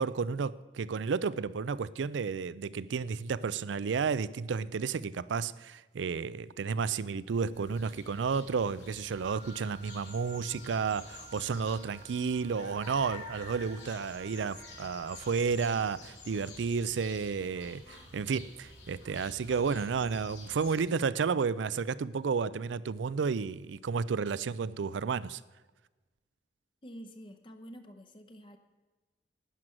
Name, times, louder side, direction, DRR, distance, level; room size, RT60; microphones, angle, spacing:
voice 1, 0.0-25.4, right 5 dB, 85° right, 0.4 m, -32 dB
sound 1, 7.5-20.8, left 3 dB, 75° left, 3.6 m, -50 dB
Wind instrument woodwind instrument, 9.2-15.4, right 5 dB, 25° right, 1.0 m, -54 dB
voice 2, 26.8-28.6, equal, 30° left, 0.8 m, -48 dB
12.0 x 9.1 x 6.3 m
head